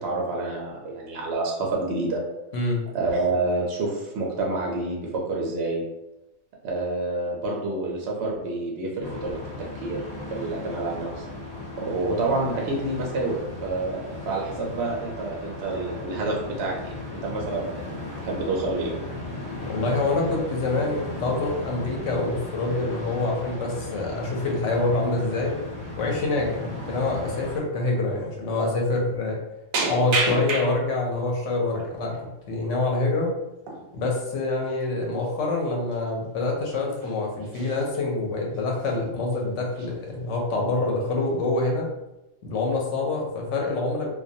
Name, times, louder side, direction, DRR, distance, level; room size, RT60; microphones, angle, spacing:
voice 1, 0.0-2.2 2.9-5.8 6.6-10.0 10.3-11.2 11.8-17.8 18.2-18.9, right 2 dB, 65° right, -2 dB, 0.6 m, -28 dB
sound 1, 9.0-27.6, left 2 dB, 35° left, 0.9 m, -36 dB
voice 2, 19.7-25.5 26.0-29.4 29.9-32.1 32.5-33.3 33.9-41.9 42.4-44.1, left 2 dB, 70° left, 0 dB, 0.9 m, -26 dB
sound 2, 26.4-26.5 27.0-27.1 28.2-28.3 28.6-28.8 29.7-31.1 31.5-32.2 33.6-33.9 34.1-34.2 34.6-34.8 35.5-35.6 35.9-36.1 36.6-37.1 37.4-38.0 38.5-39.0 39.3-39.4 39.7-40.4 40.8-41.3, right 3 dB, 85° right, 1.0 m, -31 dB
2.3 x 2.1 x 2.6 m, 0.93 s
omnidirectional pair, 1.4 m